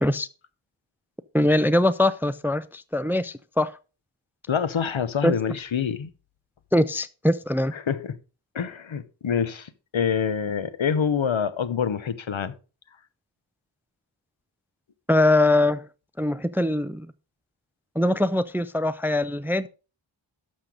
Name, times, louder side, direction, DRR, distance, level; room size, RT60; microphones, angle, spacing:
voice 1, 1.3-3.7 5.2-5.3 6.7-7.7 15.1-15.8 16.2-17.1 18.0-19.7, left 1 dB, 5° right, 0.4 m, -22 dB
voice 2, 4.5-6.1 7.7-8.1 8.5-12.5, left 7 dB, 75° left, 1.0 m, -26 dB
12.0 x 6.7 x 3.8 m
wide cardioid pair, 75°, 48 cm